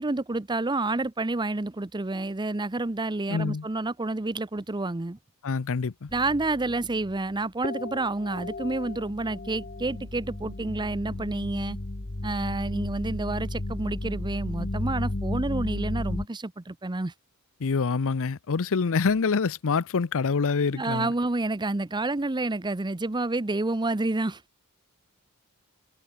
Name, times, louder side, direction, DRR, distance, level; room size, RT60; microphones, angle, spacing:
voice 1, 0.0-5.2 6.1-11.8 12.2-17.1 20.7-24.4, right 2 dB, 20° right, 0.7 m, -29 dB
voice 2, 3.3-3.7 5.4-6.1 17.6-21.1, left 5 dB, 65° left, 0.6 m, -26 dB
sound 1, 6.1-7.3 7.6-16.3, left 2 dB, 40° left, 1.2 m, -34 dB
head